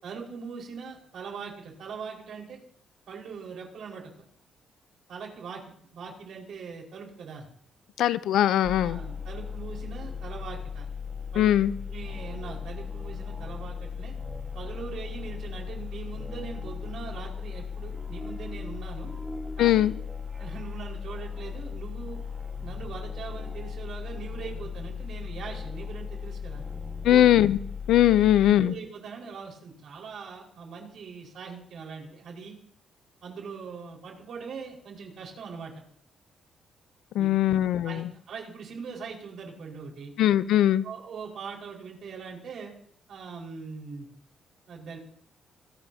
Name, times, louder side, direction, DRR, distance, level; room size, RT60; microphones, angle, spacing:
voice 1, 0.0-2.6 3.1-4.1 5.1-5.6 5.9-7.5 8.8-10.9 11.3-11.6 11.9-14.1 14.5-19.1 19.6-19.9 20.4-22.2 22.6-26.6 27.0-27.3 28.6-32.6 33.2-35.7 37.1-37.5 37.8-40.1 40.8-42.7 43.1-44.1 44.7-45.0, right 5 dB, 65° right, -1 dB, 5.0 m, -41 dB
voice 2, 8.0-9.0 11.4-11.7 19.6-19.9 27.0-27.6 27.9-28.7 37.1-38.1 40.2-40.8, left 12 dB, 85° left, 15 dB, 0.6 m, -20 dB
sound 1, 8.6-28.5, left 6 dB, 10° right, 1.6 m, -37 dB
25.0 x 18.5 x 2.9 m, 0.63 s
cardioid pair, 120°, 0 cm